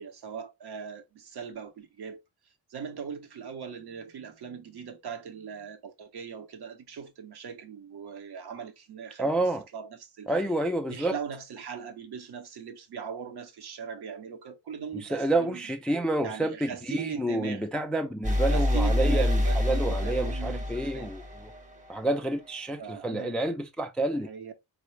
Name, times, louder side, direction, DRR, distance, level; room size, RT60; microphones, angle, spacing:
voice 1, 0.0-2.2 2.7-9.5 9.7-10.3 10.9-15.6 16.2-17.6 18.4-21.1 22.8-23.4 24.1-24.5, right 6 dB, 55° right, 0.8 m, -40 dB
voice 2, 9.2-9.6 10.3-11.2 14.9-21.5 21.9-24.3, right 1 dB, ahead, 0.3 m, -29 dB
sound 1, 18.2-22.0, left 1 dB, 15° right, 0.7 m, -26 dB
3.7 x 2.1 x 3.1 m
cardioid pair, 65°, 47 cm